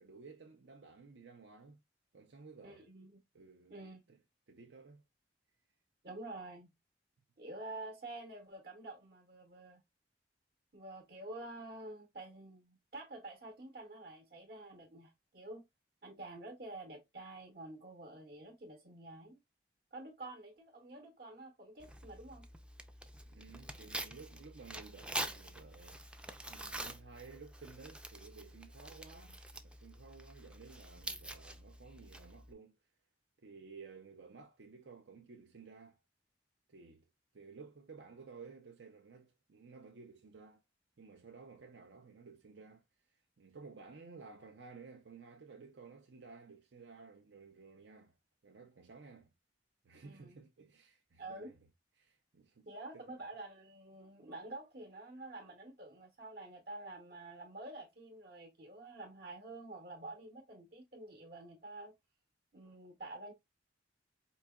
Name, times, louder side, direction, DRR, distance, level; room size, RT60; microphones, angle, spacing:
voice 1, 0.0-1.8 2.1-2.9 3.3-4.2 4.5-5.0 23.3-26.2 26.5-32.9 33.4-36.0 36.7-37.1 37.3-40.6 41.0-48.1 48.4-49.3 49.8-51.6 52.0-53.2, right 4 dB, 75° right, 0.6 m, -55 dB
voice 2, 2.6-3.2 3.7-4.0 6.0-6.7 7.4-9.8 10.7-15.6 16.0-19.4 19.9-22.5 50.0-50.4 51.2-51.5 52.7-61.9 62.5-63.3, right 2 dB, 55° right, 0.9 m, -48 dB
Tearing, 21.8-32.5, right 1 dB, 5° right, 0.3 m, -46 dB
4.7 x 2.9 x 2.3 m
head